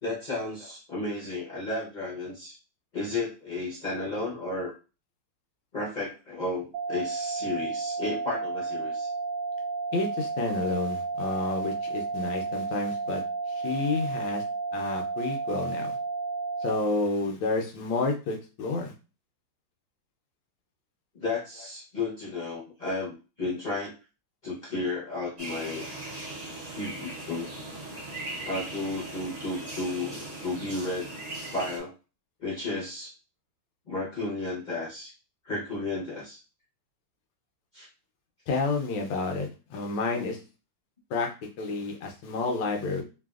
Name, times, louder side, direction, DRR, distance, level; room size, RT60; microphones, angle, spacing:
voice 1, 0.0-2.6 2.9-4.7 5.7-9.1 21.1-23.9 24.4-25.9 26.2-26.3 26.7-27.5 28.4-31.1 31.5-31.9 32.4-33.1 33.9-35.1 35.4-36.4 37.7-37.9, left 2 dB, 45° left, -5 dB, 0.5 m, -33 dB
sound 1, 6.7-16.7, right 4 dB, 75° right, 1.2 m, -32 dB
voice 2, 9.9-13.2 13.5-14.4 14.7-16.0 16.6-18.9 38.5-40.4 41.1-41.3 41.6-43.0, left 3 dB, 85° left, 2 dB, 1.4 m, -30 dB
sound 2, 25.4-31.8, right 2 dB, 50° right, 0.4 m, -39 dB
3.4 x 2.3 x 2.3 m, 0.32 s
omnidirectional pair, 2.0 m